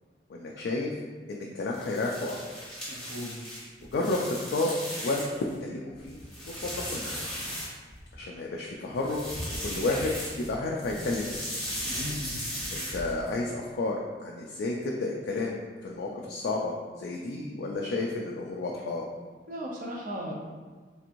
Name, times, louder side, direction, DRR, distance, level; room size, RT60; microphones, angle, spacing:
voice 1, 0.3-0.9 1.3-2.4 3.9-5.2 5.6-6.2 6.6-7.3 8.2-9.2 9.6-11.4 12.7-19.0, left 2 dB, 65° left, -2 dB, 0.3 m, -31 dB
sound 1, 1.7-5.5 5.9-8.1 8.9-10.5 10.8-13.3, equal, 5° left, 1.0 m, -37 dB
voice 2, 2.9-3.4 11.8-12.4 19.5-20.3, equal, 50° right, -2 dB, 0.6 m, -37 dB
3.4 x 2.9 x 2.5 m, 1.4 s
head